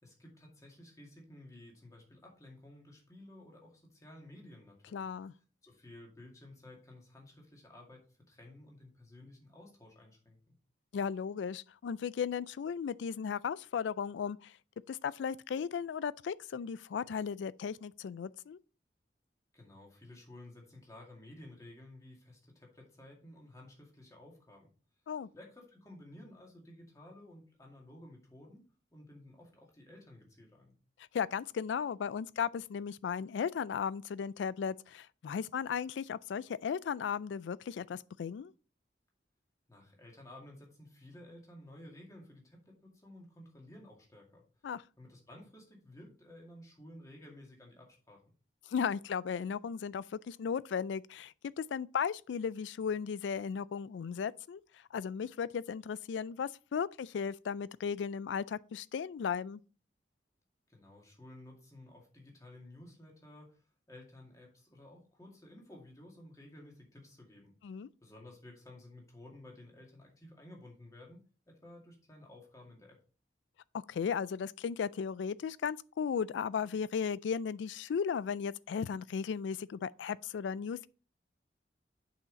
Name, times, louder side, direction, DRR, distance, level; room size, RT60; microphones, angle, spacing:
voice 1, 0.0-5.1 5.6-10.6 19.5-24.7 25.3-30.7 39.7-44.4 45.0-48.2 60.7-63.6 63.9-67.5 68.0-73.0, left 1 dB, 20° left, 2.1 m, -54 dB
voice 2, 4.9-5.3 10.9-14.5 14.9-18.6 25.1-25.3 31.1-38.5 44.6-44.8 48.7-54.6 54.9-59.6 67.6-67.9 73.9-80.9, left 7 dB, 85° left, 0.3 m, -36 dB
7.1 x 5.6 x 4.0 m
head